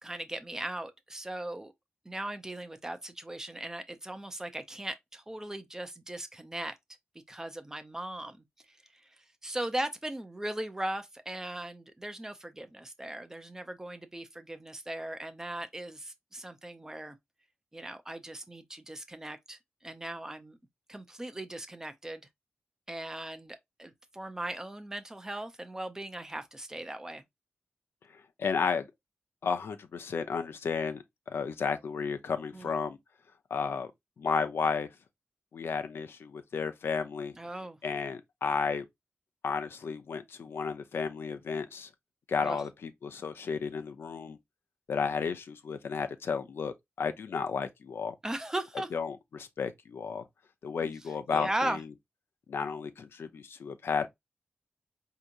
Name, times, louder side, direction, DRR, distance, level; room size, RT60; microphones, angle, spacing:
voice 1, 0.0-1.7 2.1-6.8 7.3-8.4 8.7-8.8 9.4-17.2 17.7-20.6 20.9-22.3 22.9-27.2 32.5-32.7 37.4-37.8 42.4-42.6 48.2-48.9 50.8-50.9 51.3-51.8, right 1 dB, 15° right, 0.6 m, -38 dB
voice 2, 28.1-28.9 29.4-33.0 33.5-33.9 34.2-34.9 35.5-37.3 37.8-38.8 39.4-41.9 42.3-44.4 44.9-48.1 48.9-50.3 50.6-51.9 52.5-54.1, left 5 dB, 85° left, 0.6 m, -33 dB
4.8 x 2.8 x 2.5 m
wide cardioid pair, 155°, 4 cm